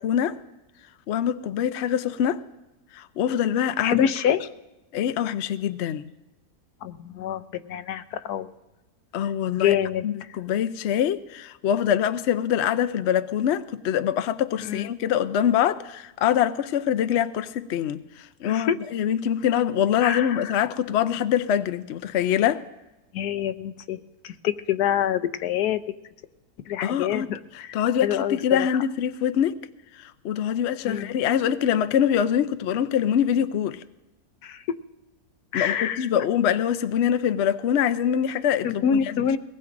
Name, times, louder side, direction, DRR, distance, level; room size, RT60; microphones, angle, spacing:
voice 1, 0.0-0.4 1.1-2.4 2.9-4.1 4.9-6.1 9.1-9.7 10.0-22.6 26.8-27.3 27.7-29.6 30.0-33.8 35.5-39.1, left 9 dB, 65° left, 0.7 m, -24 dB
voice 2, 3.8-4.4 6.8-8.5 9.6-10.1 14.6-14.9 18.4-18.8 20.0-20.5 23.1-24.0 24.2-25.8 26.7-28.7 30.8-31.1 34.4-34.6 35.5-36.1 38.6-39.4, left 9 dB, 80° left, 1.2 m, -26 dB
22.5 x 19.0 x 2.6 m
omnidirectional pair, 1.7 m